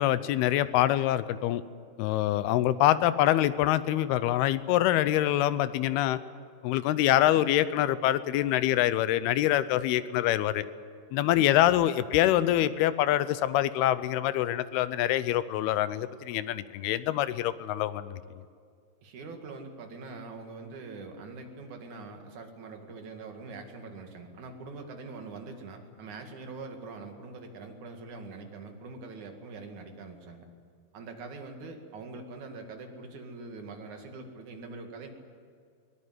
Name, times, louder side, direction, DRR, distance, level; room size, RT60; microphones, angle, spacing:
voice 1, 0.0-1.6 2.0-6.2 6.6-10.7 11.1-18.2, left 13 dB, 80° left, 15 dB, 2.5 m, -25 dB
voice 2, 19.0-30.5 30.9-35.1, right 3 dB, 50° right, 4 dB, 3.1 m, -43 dB
22.5 x 19.0 x 9.5 m, 2.2 s
omnidirectional pair, 4.9 m